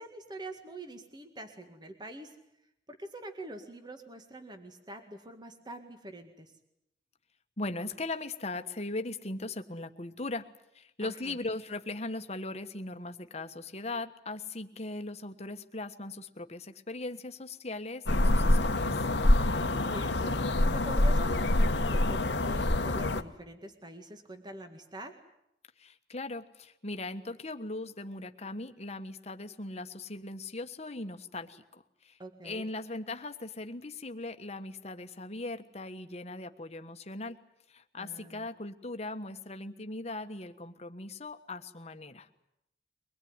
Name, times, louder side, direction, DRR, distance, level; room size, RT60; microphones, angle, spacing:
voice 1, 0.0-2.3 2.9-6.5 11.0-11.4 19.5-25.1 32.2-32.7 38.0-38.5, right 1 dB, 25° right, 6 dB, 1.9 m, -45 dB
voice 2, 7.6-10.5 10.7-19.1 25.8-32.2 32.4-37.4 37.7-42.3, left 2 dB, 35° left, 8 dB, 1.4 m, -39 dB
sound 1, 18.1-23.2, left 1 dB, 70° left, 1.2 m, -26 dB
23.5 x 21.0 x 9.7 m, 0.80 s
head